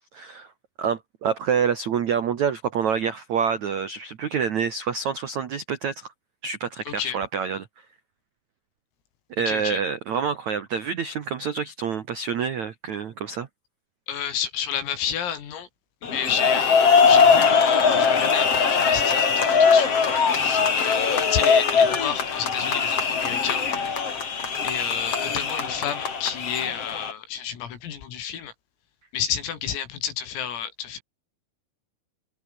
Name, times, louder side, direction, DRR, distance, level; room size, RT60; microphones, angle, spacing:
voice 1, 0.1-0.5 0.8-6.1 6.4-7.7 9.4-13.5, right 7 dB, 85° right, 1.6 m, -27 dB
voice 2, 6.9-7.2 9.5-9.8 14.1-15.7 16.0-23.6 24.6-28.5 29.1-31.0, left 9 dB, 85° left, 6.5 m, -31 dB
sound 1, 16.0-27.1, left 5 dB, 35° left, 3.4 m, -21 dB
omnidirectional pair, 5.9 m